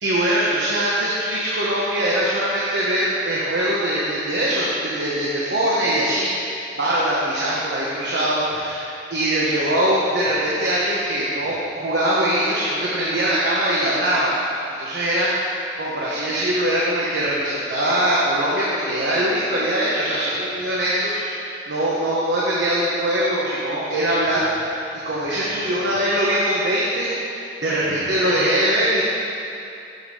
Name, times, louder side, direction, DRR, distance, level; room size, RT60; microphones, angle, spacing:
voice 1, 0.0-14.4 14.8-24.7 25.0-29.0, right 1 dB, 85° right, -7 dB, 1.1 m, -22 dB
7.8 x 5.1 x 5.4 m, 2.7 s
head